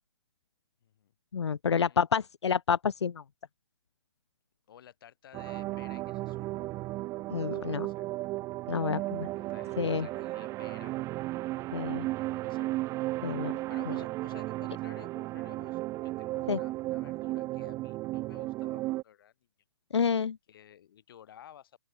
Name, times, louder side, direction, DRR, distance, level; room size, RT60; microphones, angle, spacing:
voice 1, 0.8-1.1 1.7-2.0 4.7-6.7 7.5-8.1 8.9-11.1 12.2-12.9 13.7-19.3 20.5-21.8, left 10 dB, 55° left, 7.5 m, -54 dB
voice 2, 1.3-3.2 7.3-7.9 8.7-9.3 9.8-10.1 11.7-12.1 13.2-13.5 16.5-16.6 19.9-20.4, left 6 dB, 85° left, 0.4 m, -29 dB
sound 1, 5.3-19.0, right 18 dB, 20° right, 0.6 m, -35 dB
open air
figure-of-eight pair, 130°, 14 cm